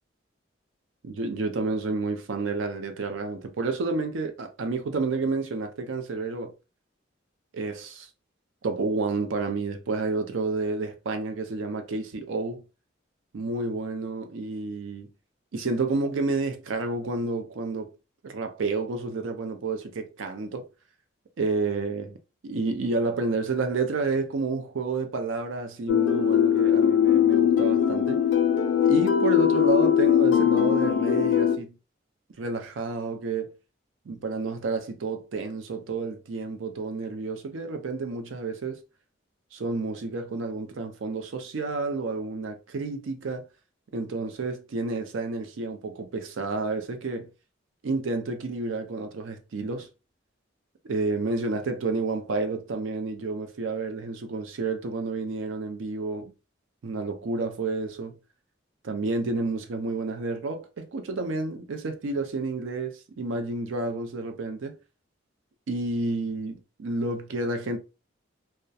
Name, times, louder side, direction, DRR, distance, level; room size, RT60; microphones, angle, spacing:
voice 1, 1.0-6.5 7.5-8.1 8.6-12.6 13.3-15.1 15.5-17.9 18.2-20.7 21.4-22.2 22.4-28.2 28.8-31.8 32.4-33.5 34.1-38.8 39.5-43.5 43.9-47.3 47.8-49.9 50.8-56.3 56.8-58.2 58.8-64.8 65.7-67.8, right 3 dB, 80° right, 0.5 m, -30 dB
sound 1, 25.9-31.6, left 9 dB, 65° left, 0.4 m, -21 dB
2.3 x 2.1 x 2.6 m
head